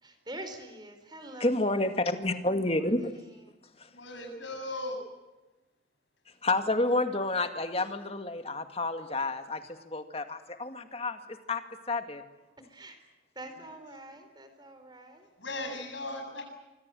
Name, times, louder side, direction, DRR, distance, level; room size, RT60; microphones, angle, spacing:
voice 1, 0.0-3.5 12.7-13.0 13.3-15.3, right 1 dB, 20° right, 8 dB, 4.3 m, -46 dB
voice 2, 1.4-3.0 3.8-3.9 6.4-11.6 11.9-12.2, left 2 dB, 30° left, 7 dB, 2.2 m, -30 dB
voice 3, 3.9-5.0 15.4-16.4, left 2 dB, 75° left, 3 dB, 7.9 m, -37 dB
25.5 x 25.5 x 7.8 m, 1.1 s
head